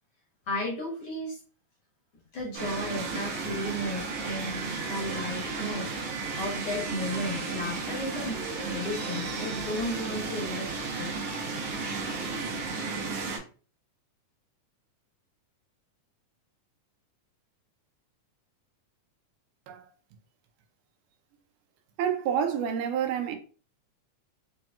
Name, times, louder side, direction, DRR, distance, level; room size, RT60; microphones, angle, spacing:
voice 1, 0.5-1.4 2.3-11.1, left 1 dB, 60° left, 1.6 m, -34 dB
sound 1, 2.5-13.4, right 4 dB, 70° right, 2.0 m, -34 dB
voice 2, 22.0-23.4, right 8 dB, 90° right, 2.2 m, -28 dB
5.4 x 2.8 x 2.3 m
omnidirectional pair, 3.6 m